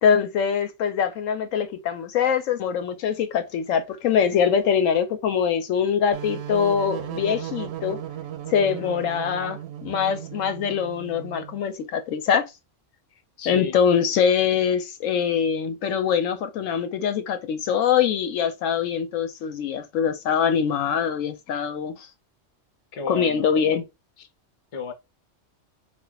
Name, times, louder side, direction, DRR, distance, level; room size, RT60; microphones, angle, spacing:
voice 1, 0.0-8.0 8.5-12.5 13.5-22.1 23.1-23.8, left 7 dB, 85° left, 1.0 m, -23 dB
sound 1, 6.1-11.6, right 11 dB, 65° right, 0.7 m, -36 dB
voice 2, 8.6-9.0 13.1-13.8 22.9-23.5 24.2-24.3 24.7-24.9, left 4 dB, 35° left, 0.6 m, -34 dB
3.5 x 2.3 x 3.8 m
omnidirectional pair, 1.3 m